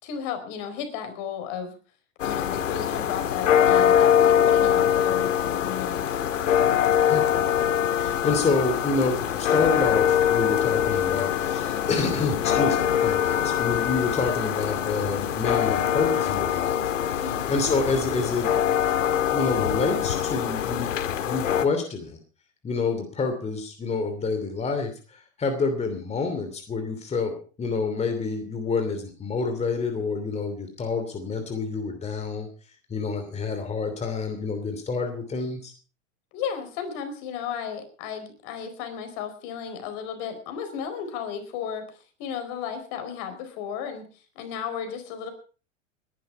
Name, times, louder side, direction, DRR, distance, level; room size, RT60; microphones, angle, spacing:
voice 1, 0.0-1.8 2.2-6.1 17.1-17.5 36.3-44.1 44.3-45.3, left 7 dB, 50° left, 8 dB, 4.6 m, -34 dB
sound 1, 2.2-21.7, left 9 dB, 75° left, 1.9 m, -23 dB
voice 2, 7.1-18.5 19.3-20.9 21.2-22.2 22.6-32.5 32.9-35.7, left 4 dB, 15° left, 6 dB, 2.9 m, -28 dB
20.0 x 11.5 x 4.6 m, 0.39 s
hypercardioid pair, 115°, 38 cm